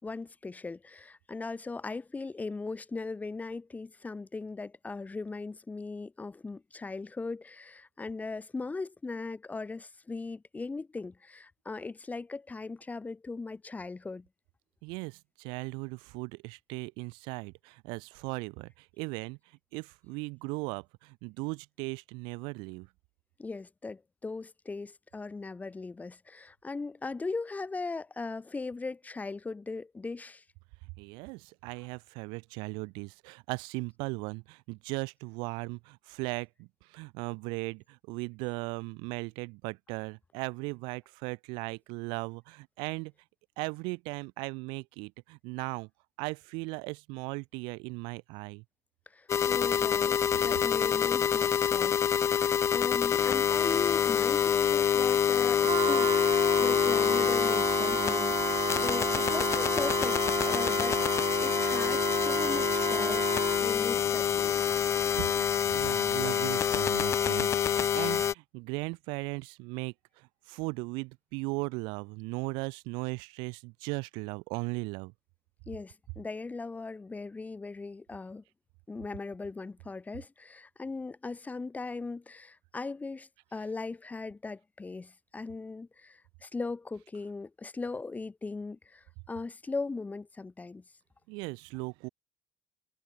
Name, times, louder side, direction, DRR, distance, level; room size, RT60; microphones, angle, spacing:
voice 1, 0.0-14.3 23.4-30.4 49.1-61.0 61.4-64.7 75.7-78.4 78.9-90.8, left 3 dB, 20° left, 4.9 m, -39 dB
voice 2, 14.8-19.4 19.7-22.9 31.0-43.1 43.6-45.9 46.2-48.6 65.7-75.1 91.3-92.1, right 28 dB, 85° right, 1.3 m, -37 dB
sound 1, 49.3-68.3, left 8 dB, 35° left, 0.5 m, -26 dB
Wind instrument woodwind instrument, 55.6-63.8, right 12 dB, 55° right, 1.4 m, -33 dB
cardioid pair, 105°, 8 cm